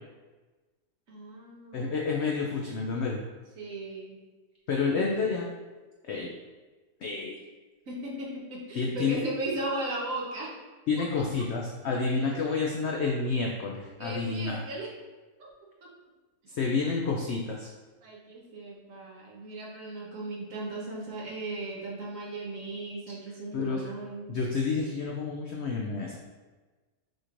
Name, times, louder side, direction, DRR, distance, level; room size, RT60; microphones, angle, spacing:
voice 1, 1.1-2.4 3.6-4.2 4.9-5.4 7.9-10.5 11.2-11.3 11.9-12.4 14.0-14.9 15.4-15.5 18.0-24.4, right 2 dB, 60° right, -3 dB, 1.3 m, -37 dB
voice 2, 1.7-3.2 4.7-5.5 6.0-6.3 7.0-7.3 8.8-9.2 10.9-14.6 16.5-17.7 23.5-23.9 24.3-26.2, left 4 dB, 85° left, -1 dB, 0.6 m, -29 dB
6.4 x 3.1 x 2.5 m, 1.3 s
omnidirectional pair, 1.7 m